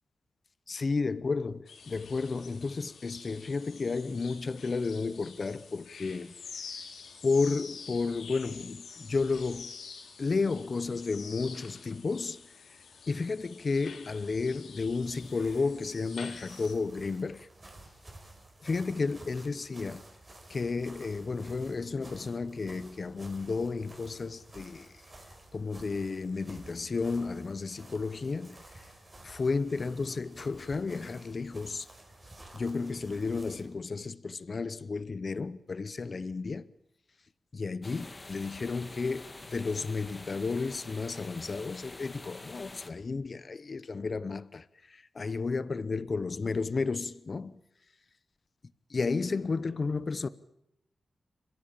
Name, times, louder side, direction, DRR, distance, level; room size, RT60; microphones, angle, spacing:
voice 1, 0.7-6.7 7.2-9.7 10.2-12.4 12.7-12.8 13.1-17.5 18.6-20.0 20.5-25.0 25.5-28.9 29.2-31.9 32.5-36.6 37.5-47.6 48.9-50.3, left 4 dB, 35° left, 0.8 m, -32 dB
sound 1, 1.7-16.7, left 5 dB, 85° left, 4.1 m, -48 dB
sound 2, 14.7-33.8, right 2 dB, 20° right, 5.0 m, -53 dB
sound 3, 37.8-42.9, left 2 dB, 20° left, 1.7 m, -47 dB
29.0 x 16.0 x 8.9 m
wide cardioid pair, 160°, 0 cm